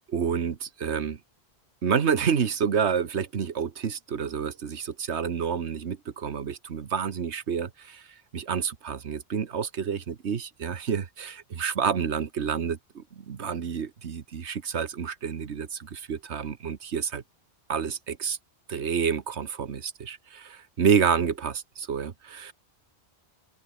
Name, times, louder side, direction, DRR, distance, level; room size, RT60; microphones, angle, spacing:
voice 1, 0.1-1.2 1.8-8.1 8.3-17.2 17.7-18.4 18.7-22.5, right 7 dB, 90° right, 1.5 m, -29 dB
omnidirectional pair, 1.1 m